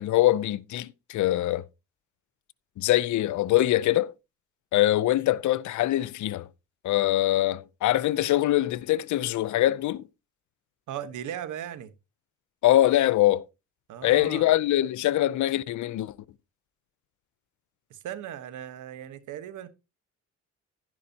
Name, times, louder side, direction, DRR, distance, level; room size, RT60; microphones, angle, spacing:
voice 1, 0.0-1.6 2.8-4.1 4.7-6.5 6.8-10.1 12.6-13.4 14.0-16.1, left 14 dB, 75° left, 0.6 m, -23 dB
voice 2, 10.9-11.9 13.9-14.5 17.9-19.7, right 10 dB, 80° right, 1.3 m, -37 dB
11.5 x 11.0 x 2.9 m
cardioid pair, 90°, 30 cm